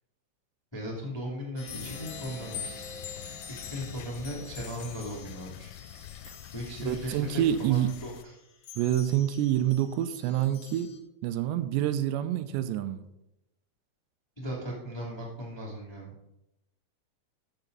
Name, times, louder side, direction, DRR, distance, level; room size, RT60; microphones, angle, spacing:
voice 1, 0.7-2.7 3.5-5.7 6.5-8.3 14.4-16.3, equal, 10° left, -4 dB, 1.2 m, -37 dB
sound 1, 1.6-11.0, left 8 dB, 65° left, 1.9 m, -46 dB
sound 2, 1.7-8.2, left 11 dB, 85° left, 2.8 m, -46 dB
sound 3, 1.7-5.3, left 2 dB, 50° left, 2.3 m, -47 dB
voice 2, 6.9-7.9 8.8-10.9 11.2-13.0, right 11 dB, 85° right, 10 dB, 2.9 m, -27 dB
13.5 x 6.8 x 4.0 m, 0.87 s
omnidirectional pair, 5.0 m